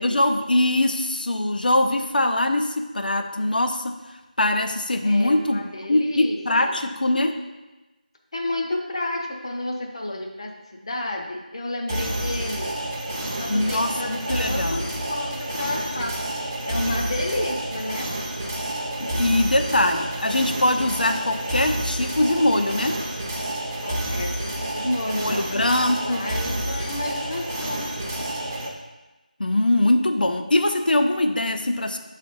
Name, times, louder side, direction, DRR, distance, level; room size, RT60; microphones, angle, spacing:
voice 1, 0.0-3.9 4.4-5.6 5.9-7.3 13.5-14.8 19.0-23.0 25.1-26.3 29.4-32.0, left 1 dB, 75° left, 6 dB, 0.5 m, -22 dB
voice 2, 5.0-6.8 8.3-12.7 13.2-16.2 16.7-18.1 23.8-27.9 31.4-31.6, left 1 dB, 35° left, 1 dB, 0.7 m, -31 dB
sound 1, 11.9-28.7, right 1 dB, 20° right, 0.6 m, -29 dB
5.7 x 3.2 x 5.5 m, 1.1 s
figure-of-eight pair, 170°, 5 cm